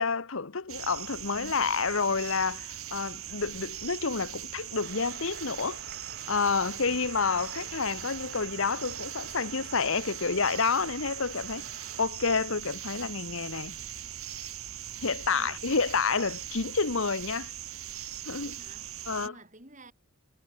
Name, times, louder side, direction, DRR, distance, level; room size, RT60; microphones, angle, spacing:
voice 1, 0.0-5.8 6.3-11.7 12.0-13.7 15.0-17.5 18.3-18.5 19.1-19.3, left 5 dB, 65° left, 1.1 m, -29 dB
sound 1, 0.7-19.3, right 11 dB, 80° right, 3.8 m, -40 dB
sound 2, 4.8-12.1, right 5 dB, 50° right, 4.2 m, -48 dB
voice 2, 6.6-7.0 15.3-16.0 18.3-19.9, right 2 dB, 35° right, 7.6 m, -53 dB
head